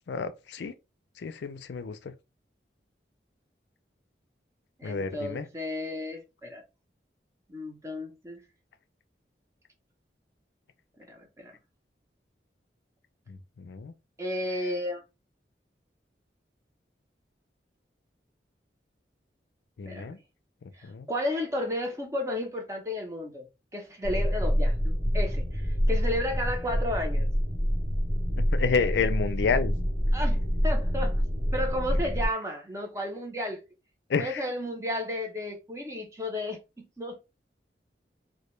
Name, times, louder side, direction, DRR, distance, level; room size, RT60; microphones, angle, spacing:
voice 1, 0.1-0.7 1.2-2.1 4.8-5.5 13.3-13.9 19.8-20.2 20.8-21.1 28.4-29.7 34.1-34.4, left 5 dB, 80° left, 0.4 m, -30 dB
voice 2, 4.8-6.6 7.5-8.4 11.1-11.5 14.2-15.0 19.9-20.1 20.8-23.5 23.7-27.3 30.1-31.2 31.5-33.6 34.2-37.2, left 1 dB, 15° right, 0.6 m, -33 dB
sound 1, 24.0-32.3, equal, 55° right, 1.0 m, -27 dB
2.2 x 2.1 x 3.0 m
head